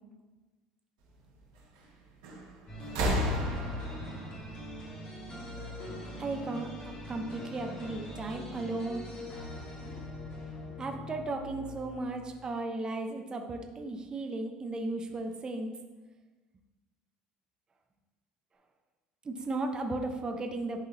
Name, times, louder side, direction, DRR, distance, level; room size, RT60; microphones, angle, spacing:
sound 1, 2.2-2.5 2.8-5.6 6.7-6.8, equal, 75° right, 2.0 m, -33 dB
sound 2, 2.7-12.5, left 1 dB, 40° left, 1.8 m, -43 dB
voice 1, 6.2-9.0 10.8-15.7 19.2-20.9, right 2 dB, 30° right, 4 dB, 0.8 m, -35 dB
11.0 x 3.7 x 2.8 m, 1.2 s
hypercardioid pair, 70°, 3 cm